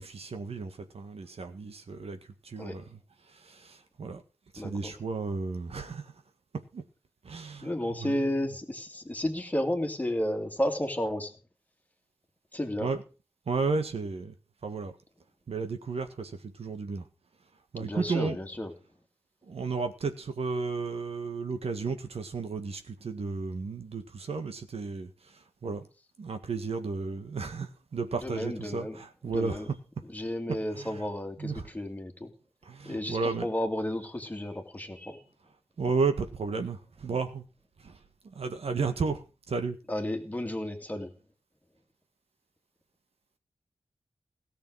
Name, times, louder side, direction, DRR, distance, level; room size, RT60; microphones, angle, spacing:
voice 1, 0.0-3.0 3.3-4.2 4.5-6.1 6.7-6.8 7.2-8.2 12.8-13.0 13.4-14.3 14.6-15.0 15.5-17.1 17.7-18.4 19.4-25.9 26.2-29.8 30.7-31.1 31.4-31.7 32.6-33.5 35.8-37.4 37.8-39.8, right 4 dB, 70° right, 1.7 m, -33 dB
voice 2, 4.6-4.9 7.6-11.3 12.5-12.9 17.8-18.7 28.2-29.0 29.3-29.7 30.1-32.3 32.8-35.2 39.9-41.1, left 1 dB, 15° left, 2.4 m, -32 dB
17.5 x 6.8 x 6.4 m
wide cardioid pair, 140°, 11 cm